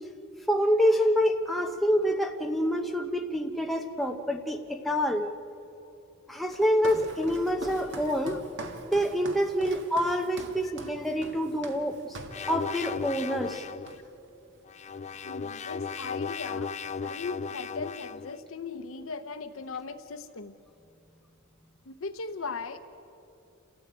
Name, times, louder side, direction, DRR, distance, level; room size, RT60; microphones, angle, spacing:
voice 1, 0.5-5.3 6.3-8.3 8.9-12.2 12.5-13.6, equal, ahead, 2 dB, 0.9 m, -27 dB
Walk footsteps, 6.5-12.5 12.9-13.2 13.5-14.3, right 2 dB, 60° right, 1.9 m, -43 dB
sound 1, 12.3-13.9 14.7-18.3, left 5 dB, 35° left, 0.4 m, -36 dB
voice 2, 15.2-16.7 17.0-20.5 21.9-22.8, left 4 dB, 75° left, 8 dB, 0.8 m, -38 dB
29.5 x 13.5 x 8.9 m, 2.8 s
head